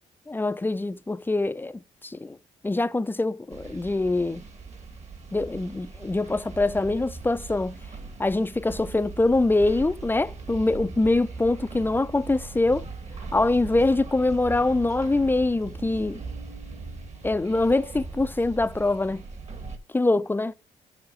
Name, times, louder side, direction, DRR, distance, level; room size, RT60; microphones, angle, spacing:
voice 1, 0.3-2.4 2.6-4.4 5.3-7.8 8.2-12.9 13.3-16.2 17.2-19.2 19.9-20.5, left 2 dB, 15° left, 0.5 m, -24 dB
sound 1, 3.5-19.8, right 4 dB, 45° right, 1.9 m, -40 dB
7.0 x 5.7 x 4.9 m
cardioid pair, 75°, 16 cm